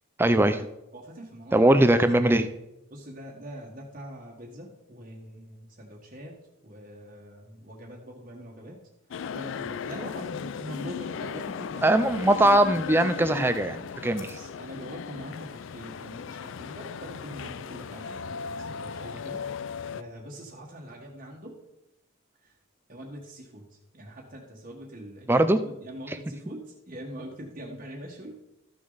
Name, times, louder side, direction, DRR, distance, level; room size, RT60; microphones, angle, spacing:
voice 1, 0.2-0.7 1.5-2.5 11.8-14.3 25.3-25.6 26.1-26.2, right 1 dB, 10° right, 10 dB, 0.4 m, -21 dB
voice 2, 0.9-1.5 2.9-6.3 6.6-8.8 9.3-11.9 14.1-19.4 19.9-21.6 22.4-22.5 22.9-23.7 23.9-28.4, equal, 40° right, -2 dB, 1.4 m, -43 dB
sound 1, 9.1-20.0, left 6 dB, 65° left, 0.3 m, -37 dB
13.5 x 6.4 x 4.0 m, 0.88 s
head